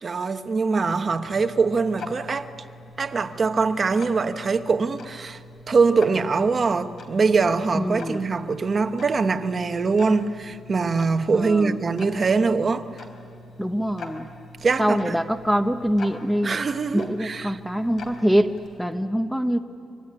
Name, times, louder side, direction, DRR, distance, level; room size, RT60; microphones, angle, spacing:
voice 1, 0.0-2.5 3.0-5.4 5.7-12.9 14.6-15.1 16.4-17.6, right 4 dB, 30° right, 1.0 m, -23 dB
Tick-tock, 0.7-19.0, left 2 dB, 55° left, 3.9 m, -44 dB
voice 2, 7.7-8.2 11.3-11.8 13.6-14.3 14.8-16.6 16.9-18.5 18.8-19.6, equal, ahead, 0.7 m, -24 dB
25.0 x 24.5 x 9.7 m
wide cardioid pair, 165°, 0 cm